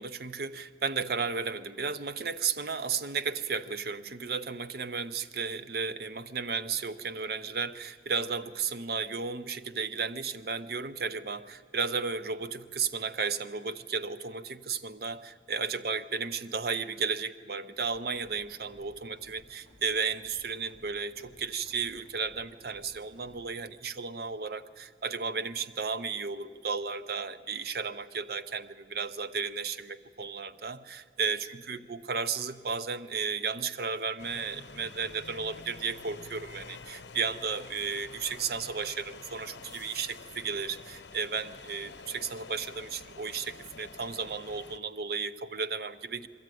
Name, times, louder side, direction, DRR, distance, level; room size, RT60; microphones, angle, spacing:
voice 1, 0.0-46.3, right 5 dB, 55° right, 13 dB, 0.6 m, -34 dB
sound 1, 17.9-23.6, left 1 dB, 85° right, 3.5 m, -59 dB
sound 2, 34.2-44.8, left 4 dB, 70° left, 0.9 m, -48 dB
21.5 x 14.5 x 9.1 m, 2.1 s
head